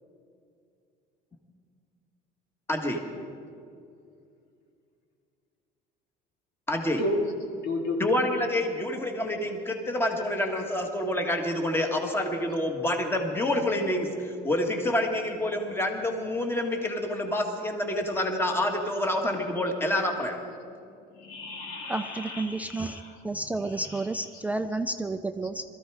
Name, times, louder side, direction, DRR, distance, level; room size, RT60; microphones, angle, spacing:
voice 1, 2.7-3.0 6.7-7.0 8.0-20.4, left 1 dB, 15° left, 3 dB, 1.6 m, -27 dB
voice 2, 7.6-8.0 21.2-23.1 23.6-24.1, left 2 dB, 80° left, 2 dB, 2.6 m, -33 dB
voice 3, 21.9-25.6, right 2 dB, 10° right, 8 dB, 0.4 m, -31 dB
21.5 x 14.0 x 4.8 m, 2.5 s
cardioid pair, 130°, 18 cm